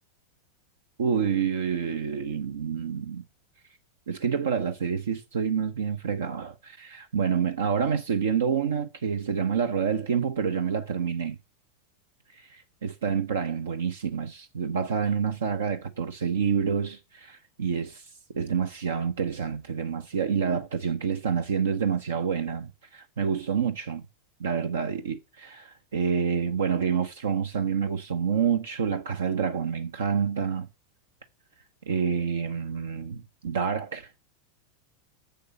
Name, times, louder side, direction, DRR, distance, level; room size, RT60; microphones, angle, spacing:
voice 1, 1.0-3.2 4.1-11.4 12.8-18.0 18.3-24.0 24.4-30.7 31.9-34.1, right 7 dB, 70° right, 0.8 m, -28 dB
7.0 x 6.7 x 7.5 m
figure-of-eight pair, 90°, 0 cm